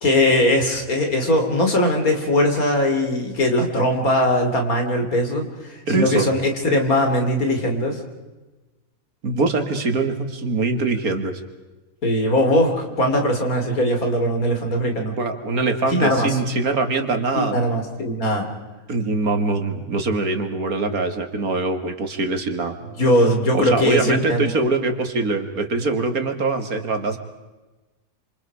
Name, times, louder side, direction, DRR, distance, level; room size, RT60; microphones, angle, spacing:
voice 1, 0.0-8.0 12.0-15.2 15.9-16.4 17.4-18.5 23.0-24.5, left 1 dB, 70° left, 4 dB, 3.8 m, -20 dB
voice 2, 5.9-6.3 9.2-11.4 15.2-17.6 18.9-22.8 23.5-27.2, right 3 dB, 75° right, 7 dB, 2.5 m, -23 dB
28.0 x 27.0 x 4.9 m, 1.2 s
omnidirectional pair, 1.5 m